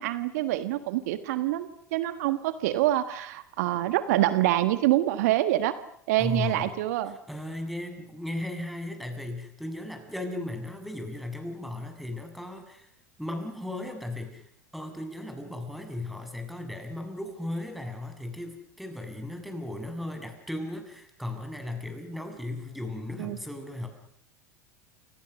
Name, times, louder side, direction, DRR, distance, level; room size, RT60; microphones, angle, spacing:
voice 1, 0.0-5.8 6.1-7.1 23.2-23.4, right 14 dB, 65° right, 12 dB, 1.5 m, -26 dB
voice 2, 6.2-6.7 7.1-12.9 13.2-14.5 14.7-23.9, left 1 dB, ahead, 5 dB, 6.9 m, -36 dB
29.5 x 27.0 x 6.6 m, 0.65 s
hypercardioid pair, 85°, 9 cm